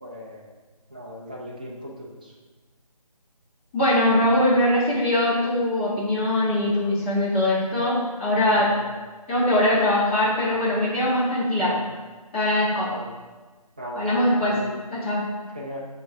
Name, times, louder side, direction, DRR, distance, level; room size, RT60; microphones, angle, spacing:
voice 1, 0.0-0.5 0.9-2.3 8.5-8.9 11.6-11.9 12.9-13.1 13.8-14.0 14.4-14.8 15.5-15.9, equal, 15° right, -3 dB, 0.4 m, -37 dB
voice 2, 3.7-8.7 9.3-11.8 12.3-12.9 13.9-14.6 14.9-15.2, left 1 dB, 20° left, -10 dB, 1.6 m, -22 dB
8.9 x 3.2 x 3.6 m, 1.3 s
figure-of-eight pair, 155°, 20 cm